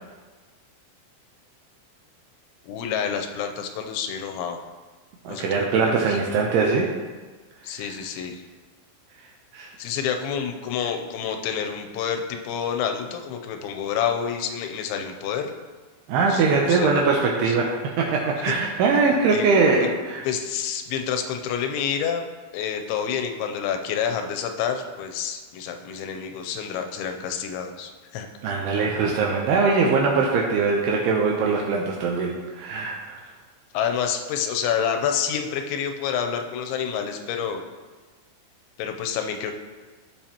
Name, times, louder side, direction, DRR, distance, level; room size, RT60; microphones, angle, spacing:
voice 1, 2.6-4.6 5.3-6.2 7.6-8.4 9.8-15.5 16.2-17.0 17.4-17.6 18.4-18.5 19.3-19.5 19.8-19.9 20.2-22.2 22.5-28.3 33.7-37.6 38.8-39.6, left 7 dB, 90° left, 5 dB, 3.0 m, -28 dB
voice 2, 5.2-6.9 7.8-7.9 9.5-9.7 16.1-17.7 18.0-20.2 28.4-33.2, right 4 dB, 80° right, -1 dB, 2.5 m, -22 dB
15.0 x 5.2 x 2.9 m, 1.3 s
omnidirectional pair, 5.1 m